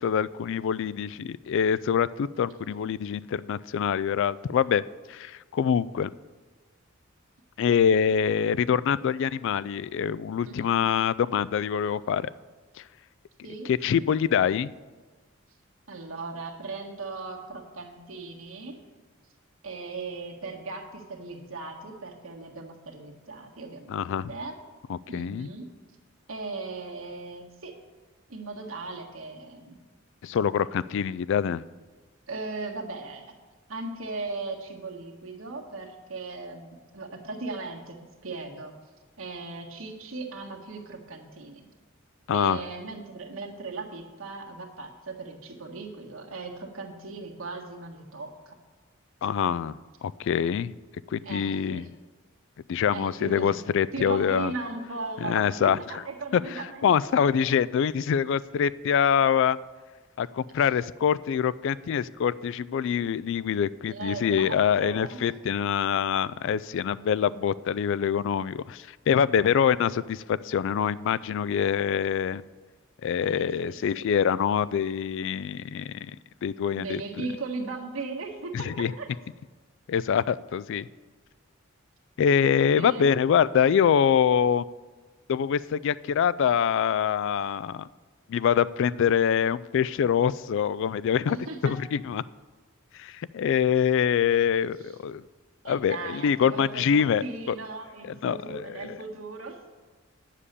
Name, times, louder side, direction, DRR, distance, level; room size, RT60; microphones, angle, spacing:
voice 1, 0.0-4.8 5.1-6.1 7.6-12.3 13.7-14.7 23.9-24.3 24.9-25.5 30.2-31.6 42.3-42.6 49.2-50.7 51.1-51.8 52.7-54.5 55.2-56.0 56.3-59.6 60.2-72.4 73.0-76.1 76.4-77.2 78.5-78.9 79.9-80.8 82.2-84.6 85.3-87.9 88.3-91.4 91.6-92.2 93.0-95.2 95.7-97.6 98.2-99.0, left 7 dB, 65° left, 19 dB, 0.3 m, -25 dB
voice 2, 10.5-10.9 13.4-14.0 15.9-18.8 19.6-24.0 24.3-24.6 25.1-25.7 26.3-27.7 28.3-29.8 32.3-33.4 33.7-38.7 39.2-41.7 42.3-48.6 51.2-51.9 52.9-53.5 53.9-56.9 60.6-60.7 63.9-65.1 73.2-74.1 76.8-79.1 82.7-83.1 91.3-91.7 94.8-94.9 95.6-99.6, right 3 dB, 80° right, 1 dB, 1.6 m, -38 dB
9.9 x 7.5 x 6.8 m, 1.3 s
head